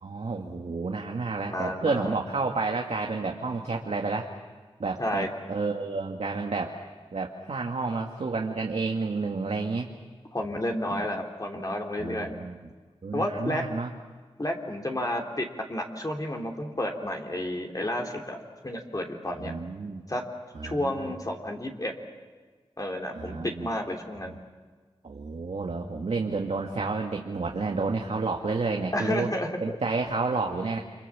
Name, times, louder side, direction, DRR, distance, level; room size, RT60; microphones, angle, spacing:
voice 1, 0.0-4.3 4.8-6.8 7.1-9.9 12.0-12.6 13.0-13.9 19.4-20.0 20.5-21.1 23.1-23.7 25.0-29.3 29.6-30.8, right 4 dB, 90° right, 1 dB, 1.7 m, -30 dB
voice 2, 1.4-2.1 5.0-5.3 10.3-12.3 13.1-13.6 14.4-18.4 18.6-19.5 20.1-20.2 20.6-21.9 22.8-24.4 28.9-29.8, left 1 dB, 35° left, 1 dB, 3.1 m, -31 dB
29.5 x 25.5 x 7.3 m, 1.4 s
wide cardioid pair, 70°, 10 cm